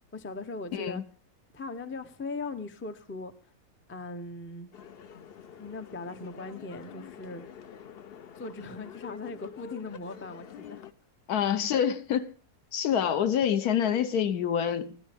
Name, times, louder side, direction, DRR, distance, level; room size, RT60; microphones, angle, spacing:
voice 1, 0.1-1.0 1.5-3.3 3.9-4.7 5.6-7.5 8.4-10.8, left 3 dB, 15° left, 0.4 m, -39 dB
voice 2, 0.7-1.0 11.3-12.3 12.7-15.0, left 8 dB, 75° left, 1.3 m, -27 dB
sound 1, 4.7-10.9, left 8 dB, 55° left, 0.6 m, -47 dB
15.0 x 13.0 x 3.5 m
omnidirectional pair, 1.7 m